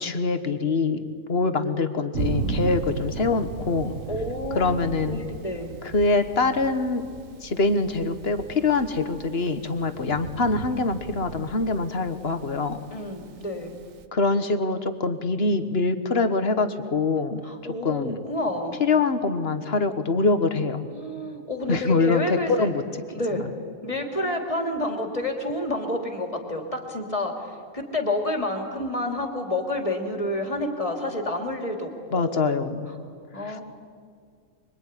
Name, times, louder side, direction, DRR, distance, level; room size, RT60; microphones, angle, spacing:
voice 1, 0.0-3.9 4.5-5.2 5.8-7.0 7.4-12.8 14.1-17.5 17.8-18.2 18.8-20.9 21.7-22.8 23.3-23.5 32.1-32.9 33.4-33.6, left 3 dB, 50° left, 9 dB, 1.7 m, -24 dB
Thunder, 2.1-14.0, right 6 dB, 80° right, 1.5 m, -36 dB
voice 2, 4.1-4.7 5.0-5.7 12.9-13.7 17.4-18.8 20.9-22.7 23.1-23.5 23.8-32.5 32.9-33.0 33.3-33.6, left 1 dB, 25° left, 3 dB, 3.2 m, -29 dB
25.0 x 24.0 x 9.9 m, 2.1 s
omnidirectional pair, 1.4 m